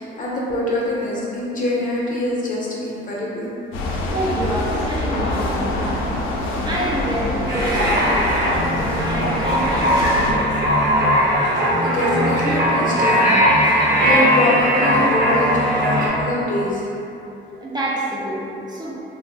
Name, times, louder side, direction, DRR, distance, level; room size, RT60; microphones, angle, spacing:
voice 1, 0.0-3.5 11.8-16.9, left 1 dB, 40° left, -5 dB, 0.7 m, -24 dB
sound 1, 3.7-10.3, left 2 dB, 85° left, 0.4 m, -25 dB
voice 2, 4.1-6.0 6.6-10.5 17.6-18.9, right 1 dB, 20° right, -6 dB, 0.3 m, -27 dB
sound 2, 7.5-16.1, equal, 45° right, 0.9 m, -19 dB
2.4 x 2.0 x 3.2 m, 3.0 s
cardioid pair, 90°, 20 cm